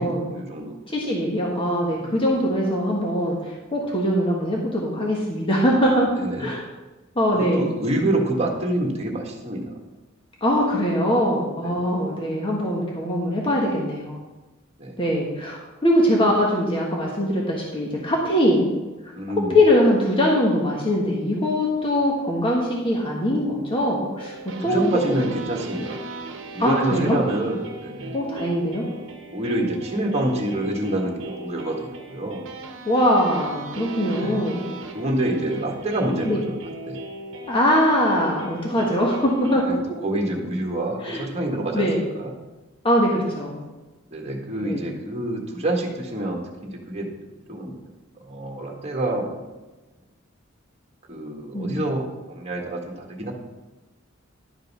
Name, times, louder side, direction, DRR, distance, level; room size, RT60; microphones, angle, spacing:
voice 1, 0.0-0.8 2.0-2.1 6.1-6.6 7.3-9.8 11.6-11.8 14.8-15.0 19.1-19.6 24.6-26.0 26.5-28.2 29.3-32.5 34.0-34.4 34.9-37.0 38.7-38.9 39.6-41.9 42.1-42.4 44.1-47.7 48.2-49.4 51.1-53.3, right 1 dB, 30° right, 1 dB, 1.6 m, -27 dB
voice 2, 0.9-3.4 3.7-6.1 6.4-6.6 7.1-7.7 10.4-14.2 15.0-18.7 19.5-24.3 24.6-25.1 26.6-27.2 28.1-28.9 32.8-34.7 36.2-36.4 37.5-39.6 41.0-41.2 41.7-42.0 42.8-43.6 44.6-44.8 51.5-51.8, equal, 25° left, -2 dB, 1.3 m, -22 dB
sound 1, 24.2-39.7, right 2 dB, 65° right, 1.1 m, -38 dB
11.0 x 5.4 x 5.5 m, 1.1 s
head